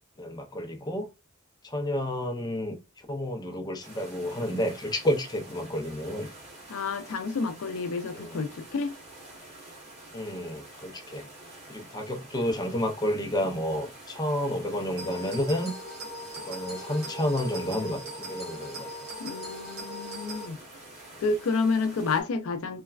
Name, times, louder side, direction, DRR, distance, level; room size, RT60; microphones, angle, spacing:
voice 1, 0.2-1.1 1.6-2.8 3.1-6.3 8.1-8.4 10.1-11.3 11.7-15.7 16.4-18.9 21.1-21.2, left 1 dB, 20° left, 0.5 m, -30 dB
sound 1, 3.8-22.2, right 1 dB, 30° right, 1.2 m, -48 dB
voice 2, 6.7-8.9 19.2-20.6 21.2-22.8, left 4 dB, 75° left, 0.4 m, -29 dB
sound 2, 15.0-20.5, equal, 50° right, 1.0 m, -39 dB
3.1 x 2.2 x 2.3 m
head